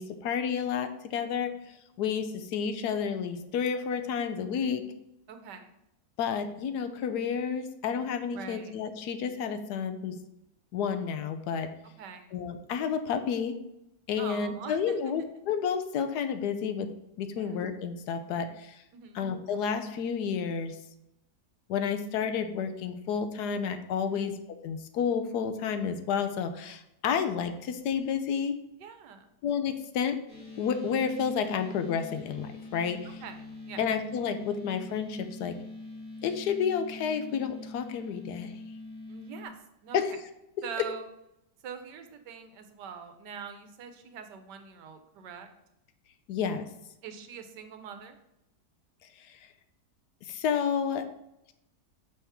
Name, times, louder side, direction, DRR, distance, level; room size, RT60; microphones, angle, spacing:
voice 1, 0.0-4.9 6.2-10.2 10.7-11.7 12.3-13.6 14.1-16.9 17.2-18.8 19.1-20.8 21.7-24.3 24.6-28.6 29.4-30.2 30.6-33.2 33.8-35.6 36.2-38.6 39.9-40.1 46.3-46.7 49.2-49.4 50.2-51.1, left 7 dB, 75° left, 9 dB, 1.1 m, -30 dB
voice 2, 5.3-5.7 8.3-8.7 12.0-12.4 14.2-15.0 17.3-17.6 18.9-19.2 24.1-24.3 28.8-29.3 33.0-33.8 39.1-39.5 39.8-40.0 40.6-41.0 41.6-45.5 47.0-48.2, right 7 dB, 85° right, 7 dB, 1.4 m, -43 dB
sound 1, 30.3-39.5, left 2 dB, 55° left, 2.6 m, -44 dB
6.0 x 3.5 x 5.6 m, 0.84 s
omnidirectional pair, 1.8 m